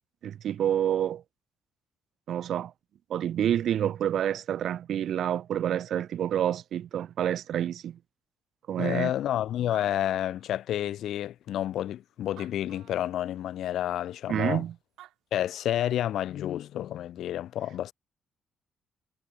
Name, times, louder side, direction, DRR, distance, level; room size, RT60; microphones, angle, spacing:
voice 1, 0.2-1.2 2.3-2.7 3.1-8.0 8.7-9.1 14.3-14.7, right 10 dB, 70° right, 1.6 m, -28 dB
voice 2, 8.8-14.6 15.3-17.9, left 12 dB, 75° left, 1.0 m, -30 dB
Animal, 9.3-9.4 9.5-11.0 11.6-11.7 12.2-13.2 14.7-14.8 15.0-15.9, right 14 dB, 85° right, 6.9 m, -54 dB
cardioid pair, 90°, 0 cm